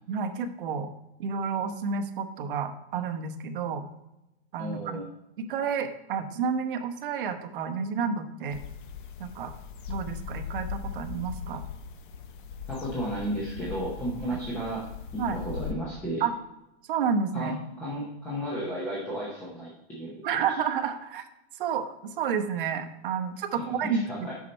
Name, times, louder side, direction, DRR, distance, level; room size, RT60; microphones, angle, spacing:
voice 1, 0.1-0.9 1.2-3.9 4.5-5.0 5.4-8.6 9.2-9.5 9.9-11.6 14.3-14.4 15.2-15.4 16.2-16.3 16.9-17.6 20.2-21.2 21.6-24.3, right 6 dB, 55° right, 6 dB, 0.9 m, -30 dB
voice 2, 4.6-5.0 12.7-14.9 15.1-16.2 17.3-20.5 23.5-24.3, right 1 dB, 5° left, -6 dB, 0.7 m, -34 dB
sound 1, 8.5-15.7, left 7 dB, 50° left, 0.6 m, -39 dB
8.4 x 5.6 x 4.2 m, 0.91 s
supercardioid pair, 180°, 32 cm